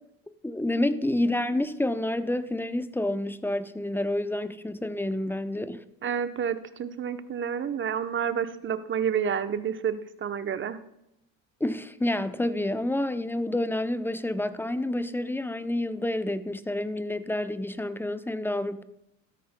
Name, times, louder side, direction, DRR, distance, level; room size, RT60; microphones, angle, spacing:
voice 1, 0.4-5.8 11.6-18.8, left 1 dB, 5° left, 0.6 m, -29 dB
voice 2, 6.0-10.8, right 7 dB, 30° right, 0.8 m, -29 dB
13.5 x 13.0 x 2.2 m
hypercardioid pair, 70°, 40 cm